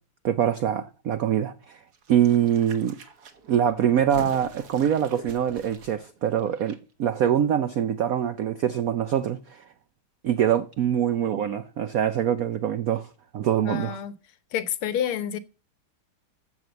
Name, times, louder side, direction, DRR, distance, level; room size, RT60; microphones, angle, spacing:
voice 1, 0.2-1.8 2.1-3.0 3.5-9.6 10.2-13.1 13.3-14.0, right 9 dB, 90° right, 0.7 m, -24 dB
sound 1, 1.9-6.8 7.0-7.1, right 4 dB, 50° right, 1.8 m, -45 dB
voice 2, 13.6-14.1 14.5-15.4, left 10 dB, 85° left, 1.9 m, -28 dB
14.0 x 4.7 x 7.8 m
omnidirectional pair, 2.3 m